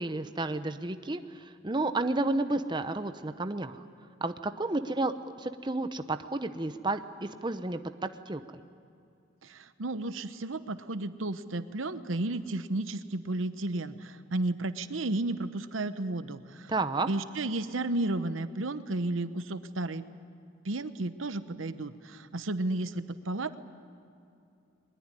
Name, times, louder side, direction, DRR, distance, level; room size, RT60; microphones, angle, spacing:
voice 1, 0.0-3.8 4.2-8.4 16.7-17.1, right 2 dB, 25° right, 9 dB, 0.8 m, -31 dB
voice 2, 9.4-16.7 17.1-20.0 20.6-23.6, right 2 dB, 90° right, 12 dB, 1.0 m, -33 dB
21.5 x 21.0 x 9.8 m, 2.6 s
head